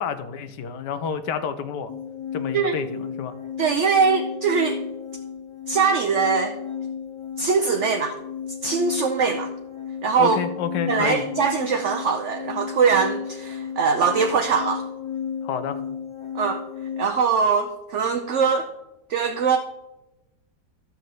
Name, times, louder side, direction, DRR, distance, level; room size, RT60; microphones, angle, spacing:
voice 1, 0.0-1.9 2.3-3.3 10.2-11.2 15.4-15.8, left 7 dB, 80° left, 11 dB, 1.4 m, -29 dB
sound 1, 1.9-17.1, left 8 dB, 25° left, 0.8 m, -33 dB
voice 2, 3.6-4.8 5.7-6.6 7.4-8.1 8.6-9.5 10.0-10.4 10.9-14.8 16.3-16.6 17.0-18.7 19.1-19.6, right 5 dB, 55° right, 5 dB, 0.8 m, -22 dB
12.0 x 4.3 x 7.5 m, 0.98 s
omnidirectional pair, 1.9 m